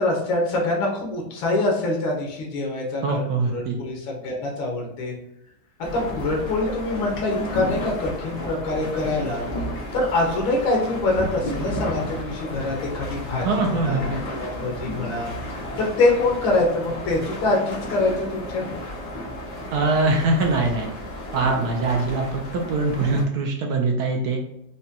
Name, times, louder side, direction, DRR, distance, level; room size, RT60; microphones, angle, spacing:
voice 1, 0.0-5.1 5.9-9.4 9.9-15.3 15.8-18.7, left 2 dB, 90° left, -2 dB, 1.8 m, -24 dB
voice 2, 3.0-3.8 13.4-14.2 19.7-20.9 21.3-24.4, right 3 dB, 75° right, 1 dB, 0.9 m, -23 dB
sound 1, 5.8-23.2, left 1 dB, 40° left, 1.1 m, -33 dB
4.9 x 2.2 x 2.8 m, 0.79 s
omnidirectional pair, 2.1 m